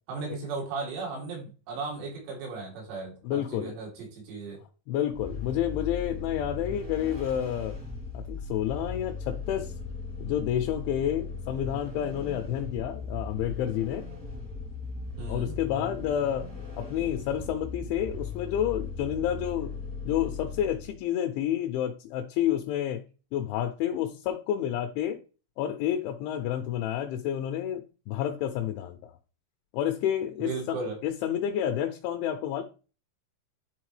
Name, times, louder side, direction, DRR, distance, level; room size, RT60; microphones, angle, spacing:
voice 1, 0.1-4.6 15.2-15.6 30.4-31.0, right 4 dB, 85° right, -2 dB, 5.5 m, -36 dB
voice 2, 3.2-3.8 4.9-7.7 8.1-9.7 10.2-14.1 15.3-16.5 16.7-19.7 20.0-23.0 23.3-25.2 25.6-29.1 29.7-30.8 31.0-32.6, left 10 dB, 85° left, 6 dB, 2.7 m, -29 dB
Vehicle, 5.1-21.0, left 4 dB, 20° right, 0.5 m, -38 dB
11.0 x 4.0 x 3.2 m, 0.35 s
omnidirectional pair, 5.9 m